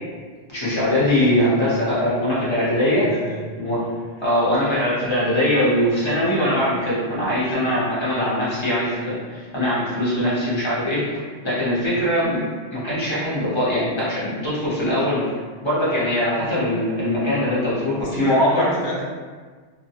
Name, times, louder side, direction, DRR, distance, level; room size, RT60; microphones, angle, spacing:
voice 1, 0.5-3.1 3.6-3.9 4.2-15.2 15.6-18.7, left 1 dB, 30° left, -9 dB, 0.8 m, -21 dB
voice 2, 3.0-3.5 18.0-19.0, left 1 dB, 85° left, -4 dB, 0.9 m, -31 dB
2.4 x 2.2 x 2.7 m, 1.5 s
omnidirectional pair, 1.1 m